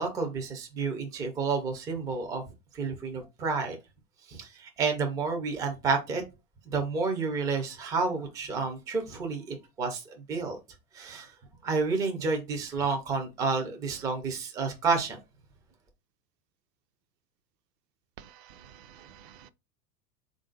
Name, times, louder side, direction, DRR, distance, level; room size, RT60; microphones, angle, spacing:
voice 1, 0.0-2.4 2.7-3.8 4.3-6.2 6.7-10.6 10.9-11.3 11.6-15.2, right 4 dB, 10° right, 0.3 m, -30 dB
voice 2, 18.2-19.5, right 10 dB, 75° right, 0.6 m, -51 dB
3.6 x 2.5 x 3.7 m
hypercardioid pair, 105°, 50 cm